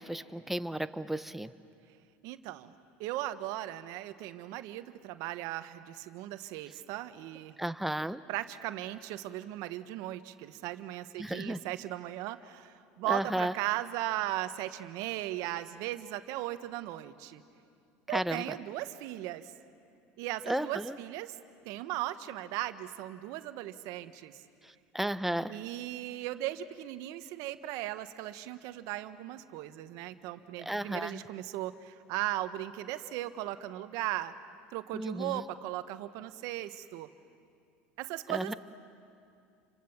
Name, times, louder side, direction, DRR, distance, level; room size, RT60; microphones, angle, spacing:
voice 1, 0.0-1.5 7.6-8.2 11.2-11.6 13.0-13.5 18.1-18.6 20.5-21.0 24.6-25.6 30.6-31.2 34.9-35.4 38.3-38.5, right 1 dB, 5° right, 12 dB, 0.9 m, -33 dB
voice 2, 2.2-2.7 3.0-7.6 8.3-17.4 18.1-19.5 20.2-21.4 21.6-24.4 25.5-34.3 34.7-37.1 38.0-38.5, right 15 dB, 70° right, 11 dB, 1.2 m, -37 dB
29.0 x 25.0 x 7.2 m, 2.4 s
supercardioid pair, 95°, 6 cm